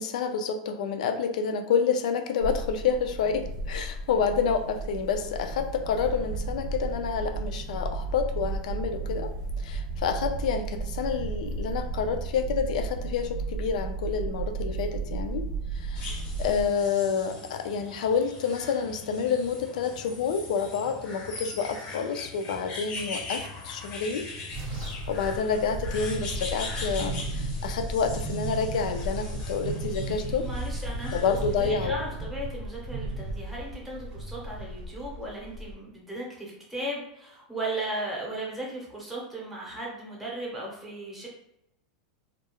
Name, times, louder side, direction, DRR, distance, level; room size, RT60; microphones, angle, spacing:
voice 1, 0.0-9.3 9.6-15.4 15.7-16.1 16.4-24.3 25.1-30.5 31.1-32.0, left 6 dB, 75° left, 7 dB, 0.4 m, -28 dB
sound 1, 2.4-16.6, right 3 dB, 85° right, 0.7 m, -33 dB
sound 2, 15.9-31.7, left 3 dB, 35° left, 0.6 m, -41 dB
sound 3, 24.5-35.7, right 1 dB, 35° right, 0.5 m, -35 dB
voice 2, 30.4-41.3, right 1 dB, 5° right, -4 dB, 0.7 m, -36 dB
2.3 x 2.0 x 2.9 m, 0.82 s
supercardioid pair, 155°, 4 cm